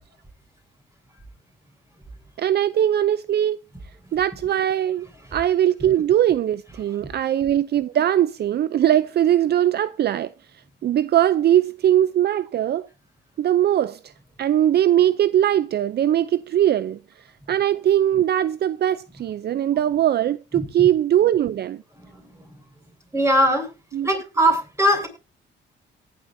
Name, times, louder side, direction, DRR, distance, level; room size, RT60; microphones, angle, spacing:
voice 1, 2.4-3.6 4.1-10.3 10.8-12.9 13.4-14.0 14.4-17.0 17.5-21.8 23.9-24.1, right 11 dB, 55° right, 0.5 m, -20 dB
voice 2, 23.1-23.7 24.0-25.1, equal, 15° right, 7.6 m, -19 dB
18.5 x 11.0 x 2.7 m
cardioid pair, 90°, 20 cm